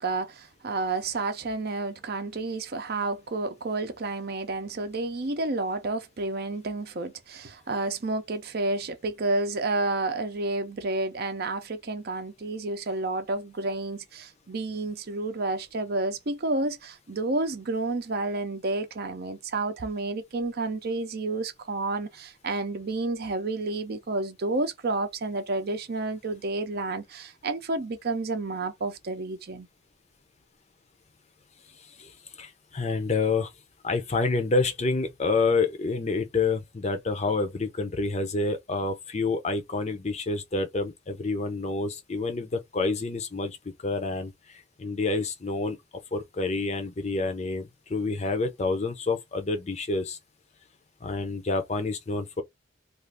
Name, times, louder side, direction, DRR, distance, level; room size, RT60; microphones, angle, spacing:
voice 1, 0.0-29.7, right 2 dB, 50° right, 0.6 m, -30 dB
voice 2, 31.8-33.5 33.8-45.8 46.1-50.2 51.0-52.4, left 3 dB, 35° left, 0.6 m, -28 dB
2.5 x 2.4 x 3.3 m
head